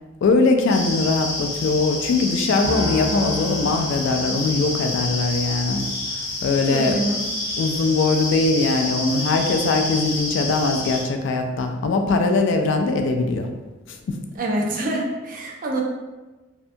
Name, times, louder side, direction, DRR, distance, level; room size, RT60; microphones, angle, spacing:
voice 1, 0.2-5.9 6.4-6.9 7.6-13.5 13.9-14.2, left 3 dB, 65° left, 5 dB, 0.3 m, -21 dB
sound 1, 0.7-11.0, left 2 dB, 40° left, 1.1 m, -28 dB
Piano, 2.6-5.1, equal, 10° right, 1.0 m, -31 dB
voice 2, 6.7-7.2 14.3-15.8, right 1 dB, 45° right, -1 dB, 0.4 m, -25 dB
2.7 x 2.2 x 2.5 m, 1.2 s
head